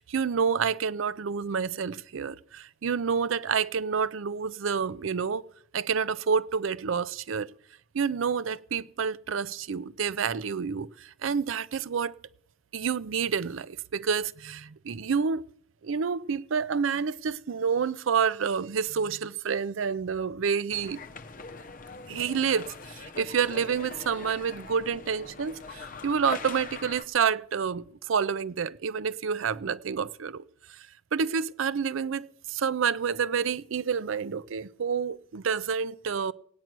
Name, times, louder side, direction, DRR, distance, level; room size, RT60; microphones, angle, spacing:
voice 1, 0.0-5.4 5.7-7.5 7.9-12.2 12.7-15.5 15.8-21.0 22.1-36.3, right 6 dB, 80° right, 0.5 m, -29 dB
sound 1, 20.7-27.0, left 4 dB, 40° left, 0.8 m, -42 dB
18.0 x 9.2 x 6.0 m
head